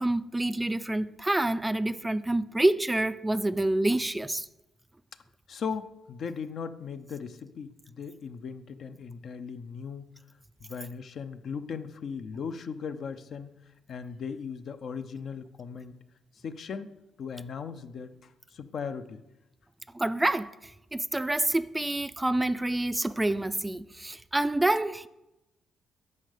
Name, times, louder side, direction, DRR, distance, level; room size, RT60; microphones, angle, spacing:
voice 1, 0.0-4.5 19.9-25.1, right 1 dB, 10° right, 0.4 m, -27 dB
voice 2, 5.5-10.0 10.6-13.5 13.9-16.0 16.4-16.9 17.2-19.2, left 6 dB, 60° left, 0.7 m, -38 dB
9.8 x 5.5 x 6.7 m
cardioid pair, 90°, 0 cm